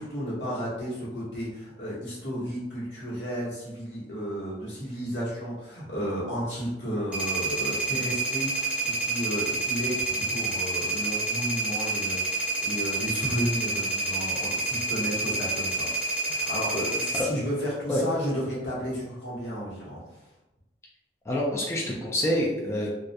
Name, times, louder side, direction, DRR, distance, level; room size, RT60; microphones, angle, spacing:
voice 1, 0.0-20.0, equal, 80° left, -7 dB, 1.1 m, -33 dB
sound 1, 7.1-17.2, right 3 dB, 5° right, 0.8 m, -28 dB
voice 2, 21.3-22.9, left 1 dB, 15° left, -4 dB, 0.3 m, -27 dB
2.3 x 2.1 x 2.7 m, 0.96 s
head